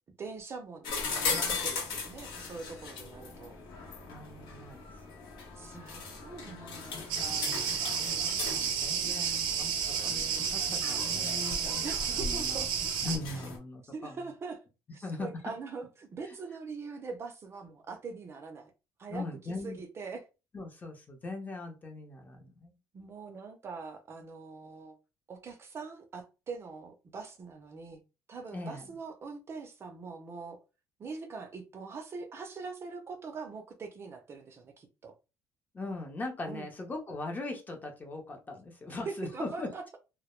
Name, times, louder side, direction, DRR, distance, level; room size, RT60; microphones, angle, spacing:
voice 1, 0.2-3.5 5.5-8.0 8.5-9.1 11.8-12.7 13.9-14.6 14.9-18.7 19.0-20.2 22.9-25.0 25.3-28.0 28.3-30.6 31.0-35.1 36.5-36.7 39.1-40.0, right 4 dB, 35° right, 0.4 m, -43 dB
sound 1, 0.8-13.6, left 4 dB, 75° left, 0.8 m, -39 dB
voice 2, 4.1-4.8 5.1-5.2 7.3-7.8 8.2-11.9 12.1-12.6 13.0-14.2 15.0-15.3 16.3-16.4 19.1-19.8 20.5-22.8 28.5-28.9 35.7-39.7, left 2 dB, 20° left, 0.6 m, -40 dB
Cricket, 7.1-13.2, right 7 dB, 85° right, 0.5 m, -31 dB
2.1 x 2.0 x 3.0 m
cardioid pair, 140°, 8 cm